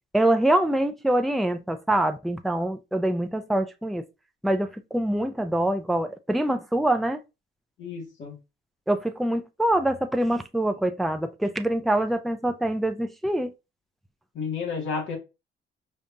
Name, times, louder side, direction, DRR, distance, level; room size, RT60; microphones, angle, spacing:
voice 1, 0.1-4.1 4.4-7.2 8.9-13.5, right 1 dB, ahead, 0.4 m, -25 dB
voice 2, 7.8-8.3 14.3-15.2, left 5 dB, 75° left, 2.0 m, -31 dB
5.2 x 2.3 x 2.7 m
cardioid pair, 90°, 20 cm